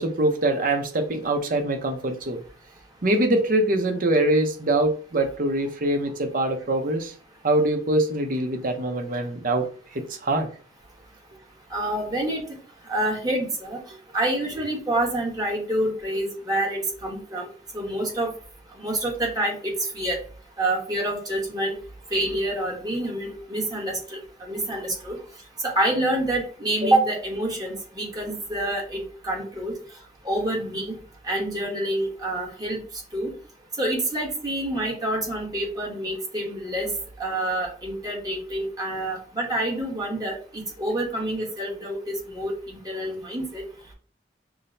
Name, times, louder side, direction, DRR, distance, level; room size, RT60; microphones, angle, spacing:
voice 1, 0.0-2.4 3.0-7.1 7.4-9.7 10.2-10.5, right 1 dB, 50° right, 4 dB, 0.7 m, -23 dB
voice 2, 11.7-12.4 12.9-13.8 14.1-17.5 17.7-18.3 18.8-20.2 20.6-21.8 22.1-24.2 24.5-25.2 25.6-29.7 30.2-31.0 31.2-32.8 33.1-33.3 33.8-36.9 37.2-43.6, right 1 dB, 20° right, -2 dB, 1.1 m, -27 dB
5.9 x 2.1 x 2.6 m, 0.42 s
head